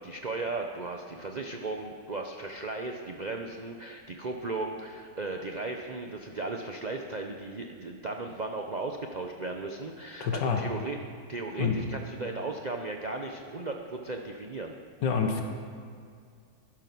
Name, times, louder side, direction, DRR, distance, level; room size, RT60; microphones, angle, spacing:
voice 1, 0.0-11.0 11.3-14.7, right 3 dB, 90° right, 3 dB, 0.3 m, -36 dB
voice 2, 10.2-10.7 11.6-11.8 15.0-15.4, left 6 dB, 85° left, 4 dB, 1.9 m, -27 dB
12.0 x 11.0 x 6.1 m, 2.2 s
omnidirectional pair, 1.9 m